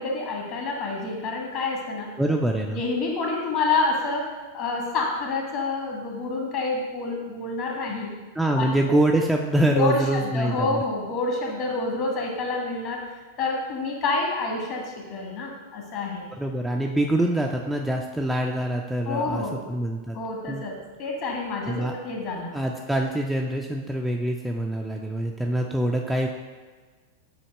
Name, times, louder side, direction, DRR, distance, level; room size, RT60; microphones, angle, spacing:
voice 1, 0.0-2.1 2.7-8.1 8.5-8.7 9.7-13.0 13.4-16.2 19.1-19.6 20.1-22.6, left 3 dB, 40° left, 0 dB, 1.4 m, -28 dB
voice 2, 2.2-2.8 8.4-10.8 16.3-20.2 20.5-20.6 21.7-21.9 22.5-26.3, right 1 dB, 5° right, 1 dB, 0.4 m, -25 dB
8.3 x 2.9 x 4.4 m, 1.4 s
figure-of-eight pair, 90°, 0 cm